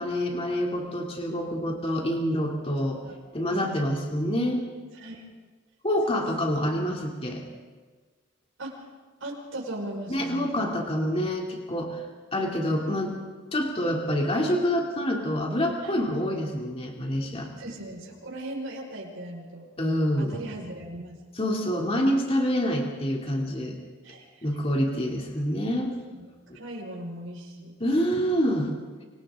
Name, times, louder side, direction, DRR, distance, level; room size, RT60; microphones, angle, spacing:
voice 1, 0.0-3.0 3.3-4.6 5.8-7.4 10.1-12.0 12.3-13.1 13.5-17.5 19.8-20.4 21.4-23.8 24.4-25.9 26.5-26.6 27.8-28.7, equal, 30° left, 0 dB, 3.0 m, -27 dB
voice 2, 3.5-4.0 4.9-5.2 6.4-6.9 8.6-8.9 9.2-10.8 15.7-16.0 17.3-19.7 20.2-21.2 24.0-24.6 25.8-26.3 26.5-27.8, right 1 dB, 70° right, -1 dB, 5.2 m, -39 dB
29.0 x 25.5 x 3.8 m, 1.4 s
head